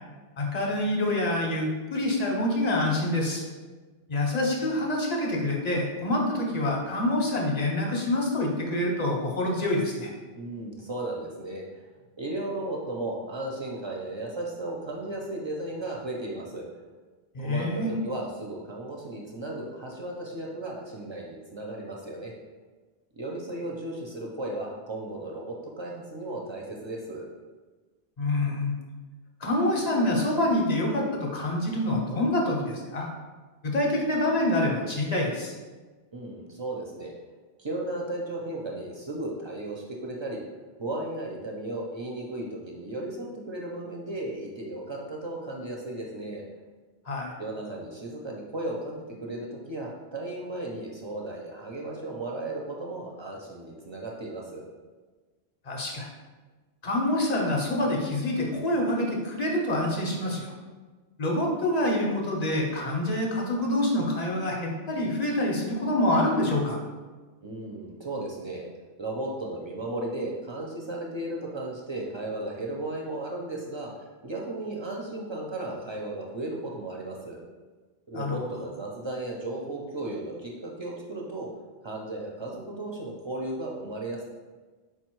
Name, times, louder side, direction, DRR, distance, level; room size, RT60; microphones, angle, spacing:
voice 1, 0.4-3.4 4.1-10.1 17.3-17.9 28.2-28.8 29.4-33.1 33.6-35.5 47.1-47.3 55.7-56.1 56.8-60.5 61.2-66.8 78.1-78.4, left 1 dB, 45° left, -1 dB, 0.7 m, -26 dB
voice 2, 10.3-11.8 12.2-16.7 17.4-22.3 23.1-27.3 36.1-37.1 37.6-40.4 40.8-46.4 47.4-54.6 67.4-68.7 69.0-77.4 78.1-81.5 81.8-84.2, right 2 dB, 40° right, -2 dB, 0.4 m, -35 dB
4.7 x 2.2 x 4.5 m, 1.3 s
omnidirectional pair, 1.1 m